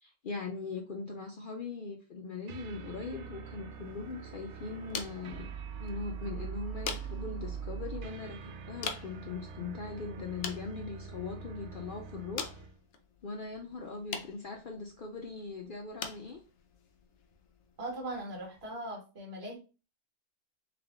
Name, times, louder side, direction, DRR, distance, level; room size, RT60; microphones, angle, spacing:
voice 1, 0.0-5.5 5.8-12.5 13.2-16.4, left 4 dB, 80° left, 3 dB, 0.4 m, -40 dB
sound 1, 2.5-12.8, right 6 dB, 65° right, 0.8 m, -43 dB
sound 2, 3.7-18.7, left 6 dB, 60° left, 0.8 m, -46 dB
voice 2, 17.8-19.6, right 1 dB, 45° right, -1 dB, 1.7 m, -39 dB
3.4 x 3.3 x 3.6 m, 0.32 s
omnidirectional pair, 1.6 m